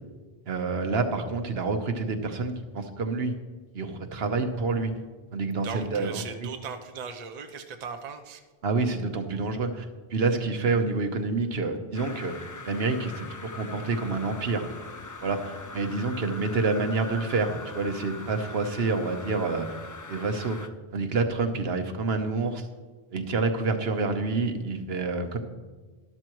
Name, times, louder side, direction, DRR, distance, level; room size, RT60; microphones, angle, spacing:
voice 1, 0.5-3.3 3.7-4.9 5.3-6.5 8.6-12.3 12.7-14.7 15.2-19.7 20.1-20.6 20.9-22.7 23.1-25.4, right 3 dB, 75° right, 6 dB, 1.2 m, -28 dB
voice 2, 5.6-8.4, right 6 dB, 45° right, 6 dB, 0.8 m, -38 dB
sound 1, 11.9-20.7, left 3 dB, 30° left, 0.3 m, -42 dB
12.5 x 12.0 x 3.0 m, 1.3 s
omnidirectional pair, 1.0 m